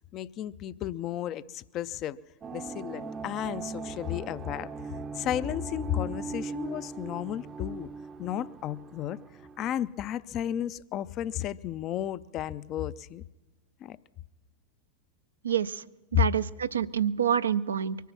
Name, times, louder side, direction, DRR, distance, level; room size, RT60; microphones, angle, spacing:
voice 1, 0.1-2.2 2.5-4.7 5.1-7.9 8.2-9.2 9.6-13.2 13.8-14.0 16.1-16.2, left 11 dB, 40° left, 17 dB, 0.4 m, -33 dB
sound 1, 2.4-9.8, right 5 dB, 25° right, 0.6 m, -40 dB
voice 2, 15.4-15.8 16.1-18.0, right 8 dB, 85° right, 12 dB, 0.4 m, -27 dB
23.5 x 9.2 x 6.0 m, 1.1 s
hypercardioid pair, 95°, 0 cm